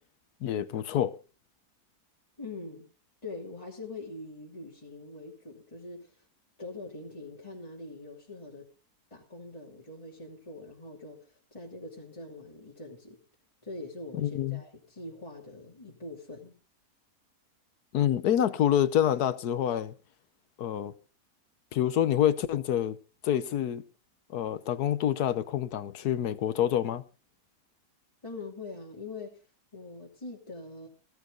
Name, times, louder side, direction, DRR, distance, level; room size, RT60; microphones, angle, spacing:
voice 1, 0.4-1.1 14.2-14.6 17.9-19.9 20.6-20.9 21.7-23.0 23.2-23.8 24.3-27.0, left 10 dB, 75° left, 1.4 m, -27 dB
voice 2, 2.4-2.9 3.2-6.2 6.6-8.7 9.1-13.2 13.6-16.6 28.2-29.3 29.7-30.9, left 2 dB, 20° left, 2.8 m, -43 dB
16.0 x 14.0 x 3.9 m
omnidirectional pair, 1.7 m